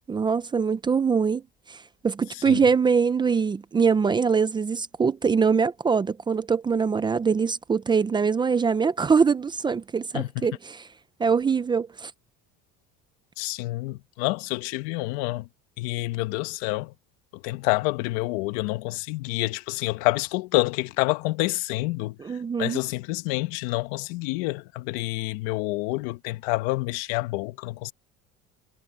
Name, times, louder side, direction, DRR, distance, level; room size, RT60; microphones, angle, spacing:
voice 1, 0.1-1.4 1.7-1.8 2.0-10.8 11.2-12.1 22.2-22.8, right 5 dB, 15° right, 0.5 m, -23 dB
voice 2, 10.1-10.5 13.4-15.5 15.8-16.9 17.3-22.1 22.6-27.9, left 21 dB, 80° left, 1.4 m, -28 dB
cardioid pair, 150°, 29 cm